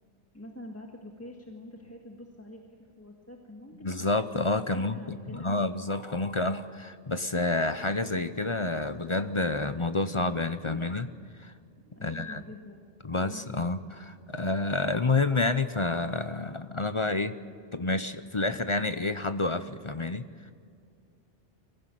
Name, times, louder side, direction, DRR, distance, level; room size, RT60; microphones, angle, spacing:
voice 1, 0.3-4.2 4.7-5.6 12.0-12.9 13.2-13.7, left 1 dB, 10° left, 0 dB, 1.7 m, -46 dB
voice 2, 3.8-5.0 5.3-11.1 11.4-11.5 12.0-12.4 13.0-17.3 17.7-20.2, left 2 dB, 30° left, 10 dB, 0.6 m, -29 dB
24.0 x 15.5 x 9.2 m, 2.3 s
omnidirectional pair, 1.2 m